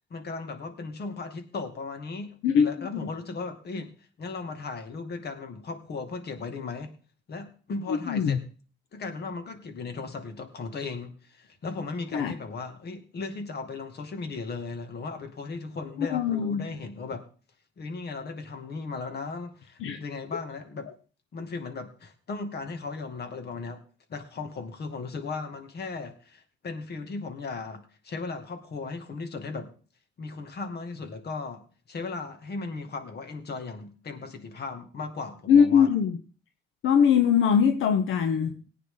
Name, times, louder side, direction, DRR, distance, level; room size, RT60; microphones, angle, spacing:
voice 1, 0.1-3.9 4.2-6.9 7.3-8.4 8.9-17.2 17.8-20.9 21.3-23.8 24.1-29.7 30.2-35.9, left 4 dB, 55° left, 2.5 m, -37 dB
voice 2, 2.4-3.1 7.9-8.4 12.1-12.3 16.0-16.7 19.8-20.0 35.5-36.2 36.8-38.7, left 7 dB, 80° left, 1.0 m, -22 dB
18.0 x 9.4 x 3.9 m
cardioid pair, 90°, 20 cm